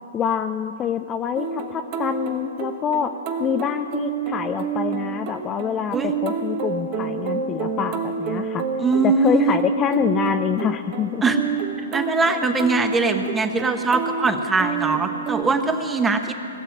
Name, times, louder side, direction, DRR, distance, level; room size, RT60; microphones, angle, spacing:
voice 1, 0.1-8.6 9.0-11.2, left 8 dB, 20° left, 8 dB, 0.5 m, -26 dB
sound 1, 1.4-15.4, right 6 dB, 40° right, 1.2 m, -29 dB
voice 2, 8.8-9.6 11.2-11.4 11.9-16.3, right 3 dB, 10° right, 6 dB, 1.1 m, -21 dB
20.0 x 7.2 x 9.8 m, 2.7 s
hypercardioid pair, 125°, 0 cm